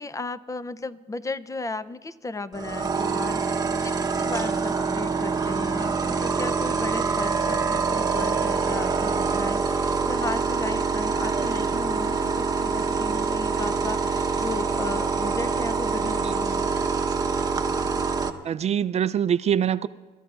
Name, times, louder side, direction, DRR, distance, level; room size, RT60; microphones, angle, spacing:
voice 1, 0.0-16.8, left 3 dB, 20° left, 16 dB, 0.4 m, -35 dB
sound 1, 2.5-18.3, right 5 dB, 20° right, 0.9 m, -25 dB
voice 2, 18.4-19.9, right 9 dB, 40° right, 15 dB, 0.4 m, -24 dB
29.5 x 14.0 x 2.4 m, 1.3 s
cardioid pair, 110°, 17 cm